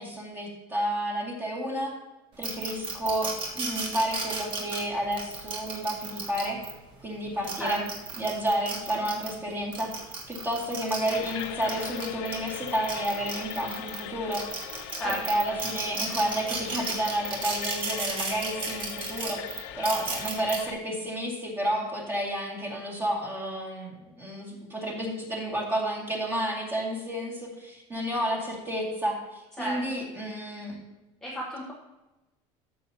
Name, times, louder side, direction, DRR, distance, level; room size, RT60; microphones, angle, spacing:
voice 1, 0.0-1.9 2.4-6.6 7.0-7.8 8.2-9.9 10.3-14.5 15.0-30.8, right 1 dB, 15° right, -3 dB, 2.3 m, -31 dB
sound 1, 2.4-6.7 7.3-9.3 9.7-14.0 14.3-20.6, right 4 dB, 35° right, 1.5 m, -34 dB
sound 2, 11.1-20.7, left 11 dB, 85° left, 0.6 m, -40 dB
voice 2, 31.2-31.7, right 1 dB, 5° left, -5 dB, 1.1 m, -32 dB
13.5 x 7.1 x 2.9 m, 1.1 s
cardioid pair, 160°, 14 cm